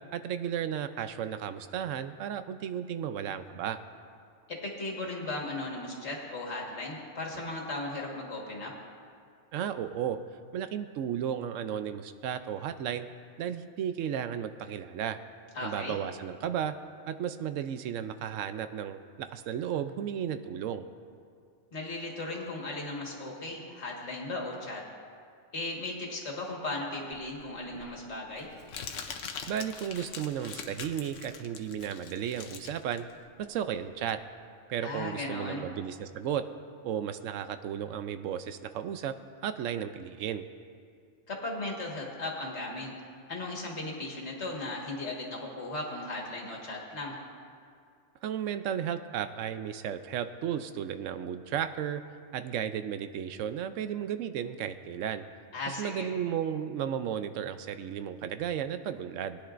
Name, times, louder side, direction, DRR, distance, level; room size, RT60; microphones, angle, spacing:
voice 1, 0.1-3.8 9.5-10.2 10.5-13.1 13.4-15.2 15.6-16.7 17.1-20.8 29.5-33.1 33.4-34.2 34.7-36.4 36.8-39.1 39.4-40.4 48.2-52.0 52.3-55.2 55.7-59.4, right 9 dB, 85° right, 10 dB, 0.9 m, -34 dB
voice 2, 4.5-8.7 15.6-16.0 21.7-24.8 25.5-28.5 34.8-35.7 41.3-42.9 43.3-47.2 55.5-56.1, left 2 dB, 60° left, -2 dB, 1.9 m, -36 dB
Crumpling crinkling, 27.1-34.2, left 6 dB, 80° left, 1.1 m, -43 dB
20.0 x 10.0 x 2.5 m, 2.3 s
omnidirectional pair, 1.3 m